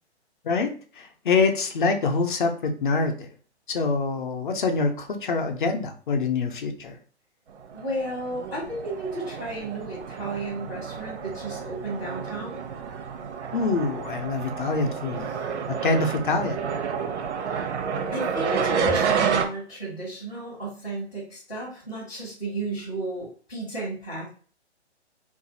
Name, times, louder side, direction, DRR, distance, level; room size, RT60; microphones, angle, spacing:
voice 1, 1.0-3.3 3.7-7.0 13.5-15.3 15.7-16.6, left 4 dB, 45° left, 5 dB, 0.6 m, -25 dB
voice 2, 7.7-12.5 15.3-15.4 17.4-17.7 18.1-24.3, right 2 dB, 5° left, -13 dB, 0.4 m, -33 dB
sound 1, 7.7-19.4, right 6 dB, 75° right, 0.8 m, -30 dB
2.5 x 2.4 x 3.9 m, 0.40 s
hypercardioid pair, 150°, 35 cm